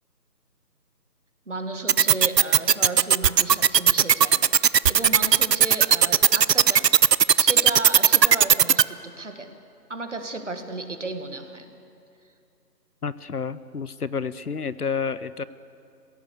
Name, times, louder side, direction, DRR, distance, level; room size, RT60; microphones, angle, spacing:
voice 1, 1.5-6.9 7.3-9.6 9.9-11.7, right 2 dB, 45° right, 7 dB, 1.7 m, -34 dB
sound 1, 1.9-8.8, right 8 dB, 75° right, 0.6 m, -16 dB
voice 2, 13.0-15.4, left 5 dB, 65° left, 16 dB, 0.8 m, -30 dB
21.5 x 16.5 x 8.2 m, 2.5 s
figure-of-eight pair, 180°, 50 cm